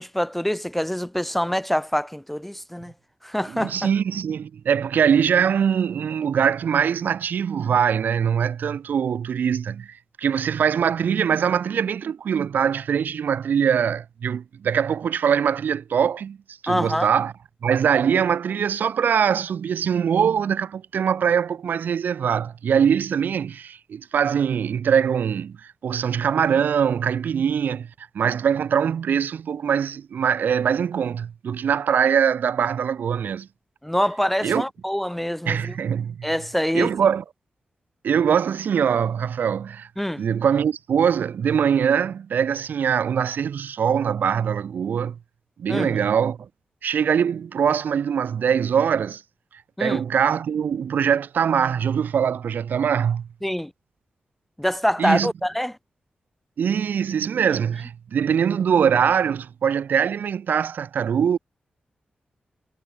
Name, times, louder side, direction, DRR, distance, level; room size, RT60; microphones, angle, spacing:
voice 1, 0.0-2.9 3.2-3.9 16.7-17.1 33.8-35.7 36.2-36.9 40.0-40.2 45.7-46.0 49.8-50.0 53.4-53.7 54.6-55.7, equal, 5° left, 0.4 m, -25 dB
voice 2, 3.5-16.4 16.6-17.3 17.6-27.9 28.1-33.5 34.4-34.6 35.4-36.3 36.7-37.2 38.0-39.9 40.2-45.2 45.6-46.4 46.8-49.2 49.8-53.3 55.0-55.3 56.6-61.4, right 7 dB, 80° right, 1.6 m, -22 dB
wide cardioid pair, 135°, 3 cm